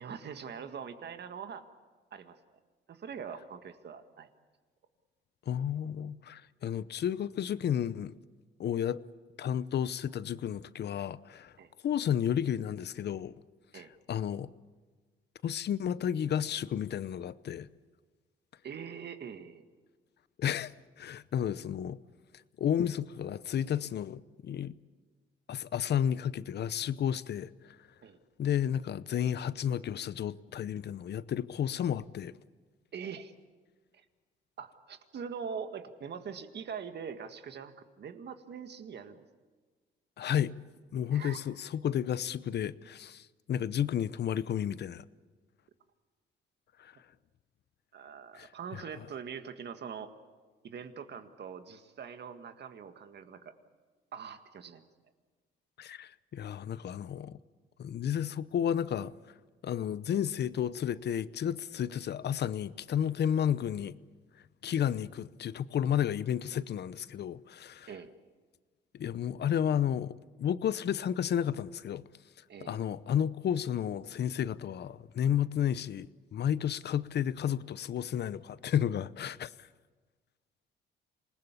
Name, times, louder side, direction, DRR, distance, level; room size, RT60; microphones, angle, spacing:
voice 1, 0.0-1.6 2.1-2.4 2.9-4.3 11.6-11.7 13.7-13.9 18.6-19.6 28.0-28.2 32.9-33.3 33.9-34.1 34.6-39.3 41.1-41.4 47.9-50.1 50.6-53.5 54.1-54.9 67.9-68.1 72.5-72.8, right 7 dB, 60° right, 1.9 m, -43 dB
voice 2, 5.5-8.1 8.6-9.0 9.4-11.5 11.8-13.3 13.7-13.8 14.1-14.5 15.4-17.7 20.4-20.7 21.0-22.0 22.6-24.7 25.5-27.8 28.4-32.3 40.2-40.5 40.9-45.0 46.8-46.9 48.4-48.8 55.8-57.4 57.8-59.1 59.6-64.0 64.6-67.9 68.9-72.0 72.6-76.1 76.3-79.5, left 9 dB, 55° left, 0.8 m, -32 dB
26.5 x 20.0 x 8.4 m
cardioid pair, 90°, 20 cm